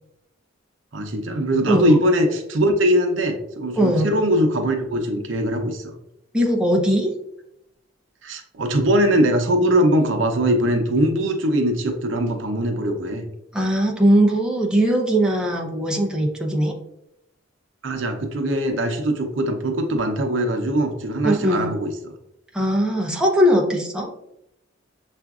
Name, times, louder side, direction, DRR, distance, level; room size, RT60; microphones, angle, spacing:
voice 1, 0.9-5.9 8.2-13.2 17.8-22.1, right 1 dB, 80° right, 5 dB, 0.6 m, -21 dB
voice 2, 1.7-2.0 3.8-4.1 6.3-7.1 13.5-16.7 21.2-21.7 22.5-24.1, equal, 5° right, -1 dB, 0.5 m, -19 dB
6.7 x 2.5 x 2.3 m, 0.81 s
head